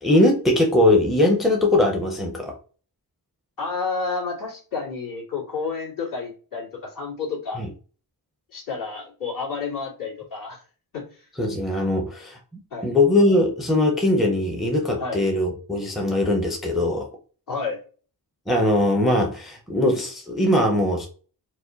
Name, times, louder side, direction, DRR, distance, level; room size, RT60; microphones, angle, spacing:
voice 1, 0.0-2.5 7.6-7.7 11.4-12.4 12.8-17.1 18.5-21.1, left 1 dB, ahead, 0 dB, 0.6 m, -20 dB
voice 2, 3.6-7.6 8.5-10.6 10.9-11.2 12.7-13.0 15.0-15.2 17.5-17.8, left 4 dB, 55° left, -4 dB, 2.2 m, -30 dB
4.7 x 2.2 x 3.8 m, 0.38 s
wide cardioid pair, 175°, 39 cm